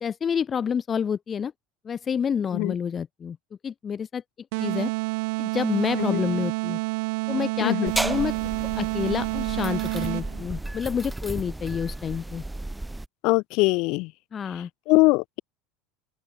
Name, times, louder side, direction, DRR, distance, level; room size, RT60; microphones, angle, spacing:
voice 1, 0.0-1.5 1.8-3.4 3.6-4.2 4.6-4.9 5.4-6.8 7.3-8.3 8.7-12.4 14.3-14.7, left 7 dB, 20° left, 0.9 m, -28 dB
sound 1, 4.5-10.5, right 29 dB, 65° right, 0.6 m, -28 dB
sound 2, 7.9-13.1, right 2 dB, 5° right, 1.5 m, -33 dB
voice 2, 13.2-14.1 14.9-15.4, left 25 dB, 50° left, 1.7 m, -22 dB
open air
cardioid pair, 175°, 0 cm